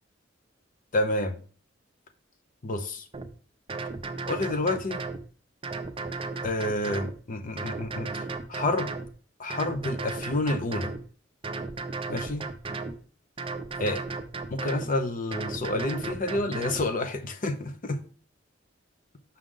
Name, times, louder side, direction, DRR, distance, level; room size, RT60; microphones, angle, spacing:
voice 1, 0.9-1.4 2.6-3.0 4.3-5.0 6.4-8.9 9.4-10.9 12.1-12.4 13.8-14.0 14.5-18.0, left 2 dB, 45° left, 8 dB, 0.8 m, -29 dB
sound 1, 3.1-3.3 3.7-5.2 5.6-7.2 7.6-9.1 9.5-11.0 11.4-13.0 13.4-14.9 15.3-16.8, right 3 dB, 30° right, 0.6 m, -35 dB
6.3 x 5.7 x 3.8 m, 0.42 s
head